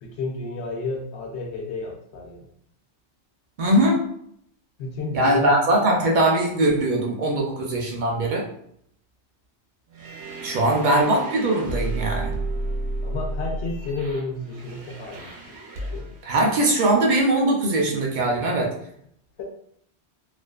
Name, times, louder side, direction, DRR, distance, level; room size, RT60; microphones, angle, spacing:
voice 1, 0.0-2.5 4.8-5.6 10.8-10.9 13.0-15.3 15.9-16.2 19.4-19.5, left 3 dB, 80° left, 1 dB, 0.9 m, -31 dB
voice 2, 3.6-4.0 5.1-8.5 10.4-12.3 16.2-18.7, right 1 dB, 60° right, 0 dB, 0.5 m, -21 dB
sound 1, 9.9-16.4, right 2 dB, 75° right, 0.9 m, -32 dB
2.4 x 2.3 x 2.2 m, 0.69 s
omnidirectional pair, 1.1 m